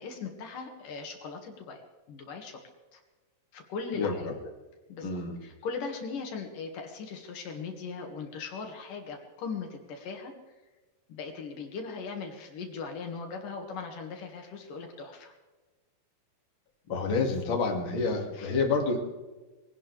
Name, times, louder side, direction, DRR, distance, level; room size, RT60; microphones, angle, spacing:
voice 1, 0.0-1.8 2.1-2.6 2.9-3.0 3.5-4.2 4.9-5.1 5.4-10.3 11.1-15.4 18.4-18.5, left 5 dB, 70° left, 3 dB, 3.4 m, -39 dB
voice 2, 4.0-4.3 5.0-5.4 16.9-19.0, left 4 dB, 40° left, 1 dB, 2.7 m, -28 dB
23.0 x 18.0 x 3.4 m, 1.2 s
omnidirectional pair, 3.9 m